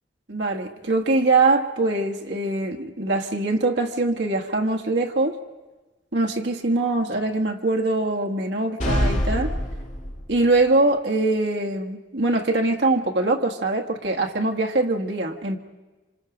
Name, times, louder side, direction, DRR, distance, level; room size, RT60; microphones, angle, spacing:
voice 1, 0.3-5.4 6.1-9.5 10.3-15.6, right 2 dB, 75° right, 2 dB, 1.6 m, -23 dB
sound 1, 8.8-10.5, equal, 40° left, 2.2 m, -24 dB
27.0 x 26.0 x 5.2 m, 1.2 s
head